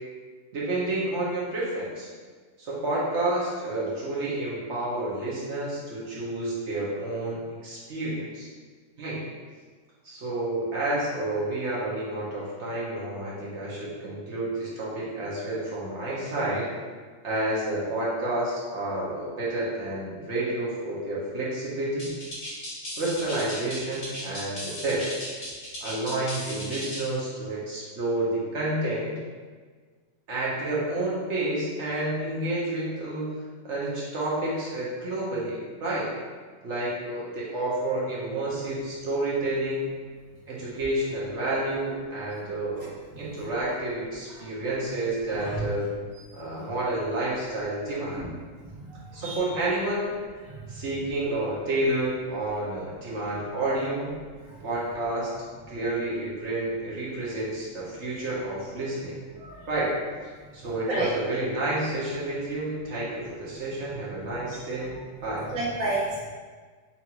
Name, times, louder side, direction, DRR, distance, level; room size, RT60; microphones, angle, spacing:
voice 1, 0.5-2.1 2.6-8.5 9.0-9.2 10.0-16.7 17.2-22.1 23.0-25.1 25.8-29.1 30.3-33.3 33.6-36.1 36.6-39.9 40.5-42.8 43.2-45.9 46.3-48.2 49.1-50.1 50.7-54.1 54.6-55.3 55.7-59.2 59.7-60.0 60.5-65.0 65.2-65.5, right 1 dB, 60° right, -6 dB, 1.2 m, -30 dB
sound 1, 22.0-27.1, equal, 45° left, 1.3 m, -36 dB
voice 2, 43.1-43.5 45.4-45.6 48.1-48.2 48.8-49.4 50.5-50.6 59.3-59.6 60.9-61.1 65.5-66.3, right 2 dB, 85° right, -5 dB, 1.4 m, -31 dB
5.6 x 2.5 x 2.9 m, 1.5 s
omnidirectional pair, 1.4 m